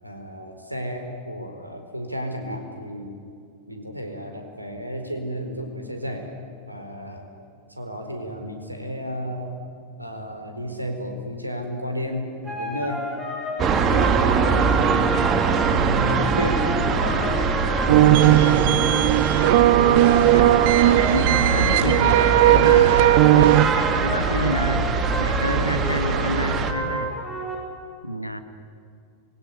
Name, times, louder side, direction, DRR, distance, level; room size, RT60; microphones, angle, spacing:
voice 1, 0.0-3.1 3.7-6.3 6.7-7.3 7.8-9.6 10.0-13.0 13.9-15.2 15.6-18.6, equal, 85° right, 4 dB, 4.4 m, -32 dB
sound 1, 12.4-27.5, equal, 5° right, 7.0 m, -31 dB
sound 2, 13.6-26.7, right 5 dB, 30° right, 2.5 m, -23 dB
sound 3, 17.9-23.7, right 15 dB, 50° right, 0.8 m, -17 dB
voice 2, 21.1-27.2 28.0-28.4, equal, 90° left, 9 dB, 1.8 m, -29 dB
26.5 x 22.5 x 9.9 m, 2.4 s
figure-of-eight pair, 90°, 0 cm